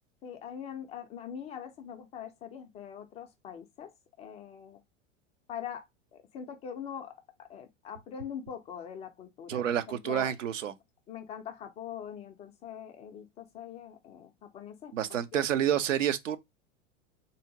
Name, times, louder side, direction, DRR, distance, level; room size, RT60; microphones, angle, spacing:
voice 1, 0.2-4.8 5.5-5.8 6.1-10.3 11.1-15.4, left 8 dB, 20° left, 0.3 m, -43 dB
voice 2, 9.5-10.7 14.9-16.4, right 10 dB, 75° right, 0.6 m, -29 dB
3.7 x 2.7 x 2.5 m
figure-of-eight pair, 85°, 38 cm